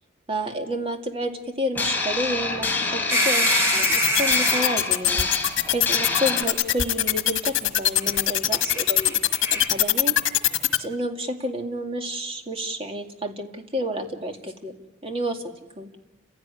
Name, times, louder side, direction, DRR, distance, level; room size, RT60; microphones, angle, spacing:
voice 1, 0.3-5.3 5.7-9.2 9.5-10.2 10.8-14.7 15.0-15.4 15.8-15.9, equal, 30° right, 4 dB, 2.3 m, -30 dB
sound 1, 1.7-6.4, left 3 dB, 10° left, 3.7 m, -27 dB
blue mud-dauber wasp, 3.1-4.7 5.9-6.0 8.0-8.2 8.5-9.7, equal, 15° right, 4.4 m, -25 dB
sound 2, 3.8-10.8, left 12 dB, 85° left, 1.3 m, -21 dB
29.5 x 16.5 x 10.0 m, 1.1 s
head